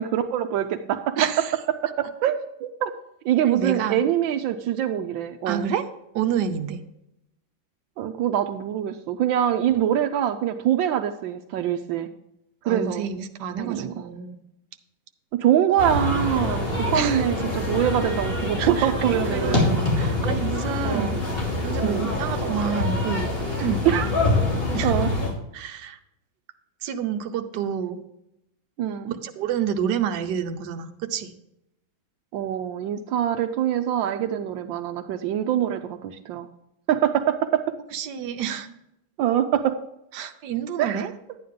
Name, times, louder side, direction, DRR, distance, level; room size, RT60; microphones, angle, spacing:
voice 1, 0.0-1.2 1.8-2.9 3.2-5.7 8.0-12.1 12.7-13.1 13.6-13.9 15.3-19.8 20.8-21.2 21.8-22.1 23.8-24.1 24.8-25.1 28.8-29.1 32.3-36.5 36.9-37.6 39.2-39.8 40.8-41.1, right 10 dB, 80° right, 8 dB, 1.4 m, -24 dB
voice 2, 1.2-1.6 3.4-4.0 5.4-5.8 6.1-6.8 12.6-14.4 16.9-17.2 18.6-18.9 19.3-21.1 21.3-23.3 23.6-23.8 24.7-24.9 25.5-26.0 26.8-28.0 29.2-31.3 37.9-38.7 40.1-41.1, right 8 dB, 65° right, 7 dB, 1.4 m, -28 dB
sound 1, 15.8-25.3, left 2 dB, 30° left, 3.3 m, -25 dB
11.5 x 9.4 x 3.7 m, 0.84 s
omnidirectional pair, 2.1 m